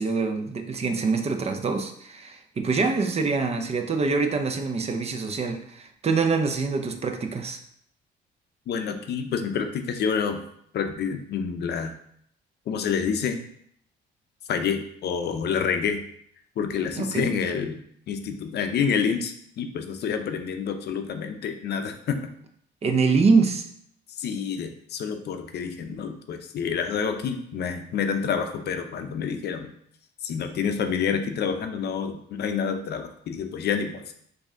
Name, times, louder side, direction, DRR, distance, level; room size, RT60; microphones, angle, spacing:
voice 1, 0.0-7.6 17.0-17.3 22.8-23.7, right 4 dB, 35° right, 5 dB, 0.6 m, -25 dB
voice 2, 8.7-10.4 10.7-11.9 12.7-13.4 14.5-16.0 16.6-17.8 18.1-22.3 24.2-29.7 30.2-34.0, left 6 dB, 60° left, 7 dB, 0.6 m, -28 dB
5.1 x 2.7 x 3.6 m, 0.67 s
cardioid pair, 110°, 19 cm